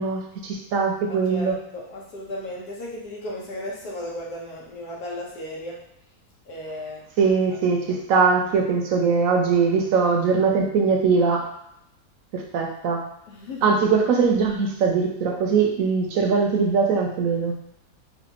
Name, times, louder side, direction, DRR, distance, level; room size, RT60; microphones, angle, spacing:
voice 1, 0.0-1.6 7.2-11.4 12.3-13.0 13.6-17.5, right 5 dB, 70° right, 1 dB, 0.9 m, -21 dB
voice 2, 1.1-5.8 6.5-7.0 13.3-13.8, left 1 dB, 80° left, -4 dB, 1.5 m, -35 dB
4.2 x 2.5 x 2.9 m, 0.77 s
omnidirectional pair, 1.6 m